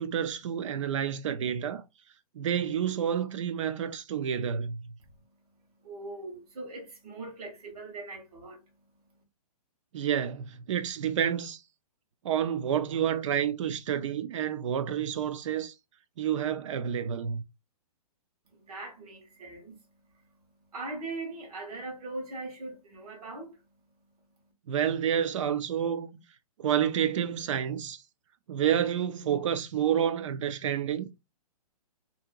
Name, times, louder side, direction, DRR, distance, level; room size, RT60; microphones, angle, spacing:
voice 1, 0.0-1.8 2.3-4.9 9.9-11.6 12.2-15.7 16.2-17.4 24.7-26.2 26.6-28.0 28.5-31.1, right 9 dB, 55° right, 0.4 m, -29 dB
voice 2, 5.1-9.2 18.5-24.3, right 2 dB, 70° right, 1.3 m, -42 dB
2.8 x 2.6 x 2.2 m
hypercardioid pair, 160°, 20 cm